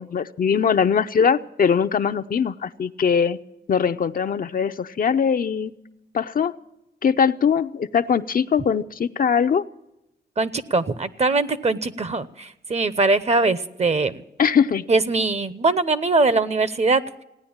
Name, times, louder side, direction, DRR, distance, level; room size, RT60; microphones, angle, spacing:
voice 1, 0.0-3.4 3.7-5.7 6.1-6.5 7.0-9.6 14.4-14.8, left 7 dB, 50° left, 9 dB, 0.6 m, -21 dB
voice 2, 10.4-14.2 14.9-17.0, right 3 dB, 40° right, 15 dB, 0.9 m, -21 dB
16.5 x 9.7 x 8.7 m, 0.90 s
cardioid pair, 70°, 18 cm